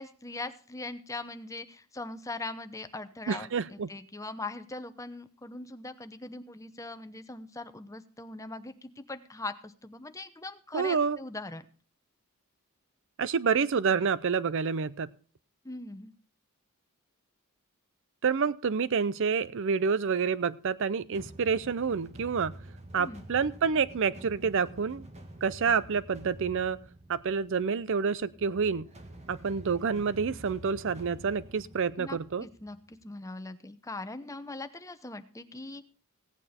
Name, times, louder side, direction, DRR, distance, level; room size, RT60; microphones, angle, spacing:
voice 1, 0.0-11.6 15.6-16.1 23.0-23.3 32.0-35.8, left 2 dB, 15° left, 10 dB, 0.8 m, -41 dB
voice 2, 3.3-3.9 10.7-11.2 13.2-15.1 18.2-22.6 22.9-25.1 25.4-26.8 27.1-28.9 29.3-32.4, right 5 dB, 60° right, 18 dB, 0.5 m, -28 dB
sound 1, 21.1-33.0, right 1 dB, 30° right, 1.7 m, -48 dB
16.5 x 9.0 x 4.3 m, 0.40 s
head